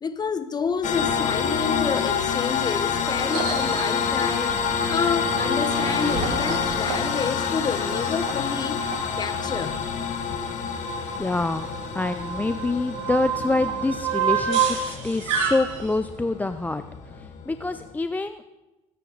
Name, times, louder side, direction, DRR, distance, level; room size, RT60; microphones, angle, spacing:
voice 1, 0.0-4.6 4.9-9.9, left 6 dB, 25° left, 1.1 m, -29 dB
sound 1, 0.8-17.9, left 6 dB, 50° left, 2.0 m, -28 dB
sound 2, 3.3-16.0, right 7 dB, 85° right, 3.0 m, -31 dB
voice 2, 11.2-11.7 11.9-18.4, left 2 dB, 10° left, 0.4 m, -26 dB
20.5 x 9.2 x 3.9 m
supercardioid pair, 90°, 16 cm